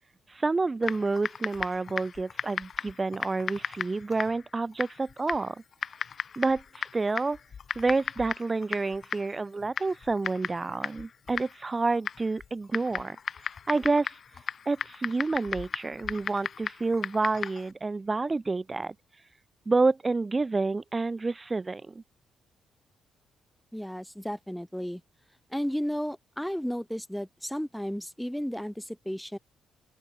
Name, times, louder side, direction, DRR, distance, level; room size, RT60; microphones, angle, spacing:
voice 1, 0.3-5.6 6.4-7.4 7.8-13.2 13.7-14.1 14.7-18.9 19.7-22.0, right 3 dB, 25° right, 2.5 m, -29 dB
Typing, 0.8-17.7, left 7 dB, 50° left, 5.2 m, -37 dB
voice 2, 23.7-25.0 25.5-29.4, equal, ahead, 3.6 m, -33 dB
open air
cardioid pair, 90°, 0 cm